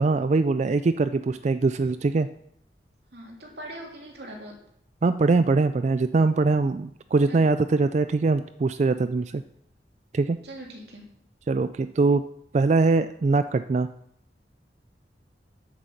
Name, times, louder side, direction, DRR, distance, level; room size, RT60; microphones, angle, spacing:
voice 1, 0.0-2.3 5.0-9.4 10.1-10.4 11.5-12.2 12.5-13.9, right 3 dB, 40° right, 11 dB, 0.3 m, -22 dB
voice 2, 3.1-4.5 7.3-7.5 10.4-11.0, right 1 dB, 65° right, 0 dB, 3.1 m, -41 dB
9.5 x 8.2 x 6.6 m, 0.73 s
head